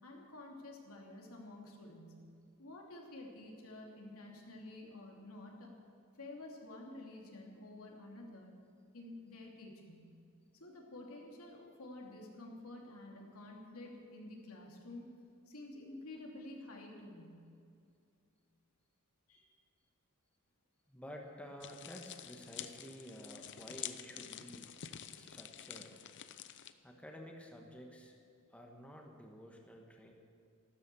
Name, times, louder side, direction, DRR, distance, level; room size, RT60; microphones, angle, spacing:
voice 1, 0.0-2.2 2.6-5.7 6.2-8.5 8.9-10.1 10.6-15.1 15.5-17.5 19.3-19.4, left 2 dB, 75° left, -1 dB, 2.9 m, -50 dB
voice 2, 20.9-24.7 25.1-26.0 26.8-28.2 28.5-30.1, equal, 5° left, 1 dB, 1.4 m, -51 dB
sound 1, 21.6-26.7, left 10 dB, 55° left, 0.7 m, -48 dB
14.0 x 13.0 x 7.0 m, 2.4 s
head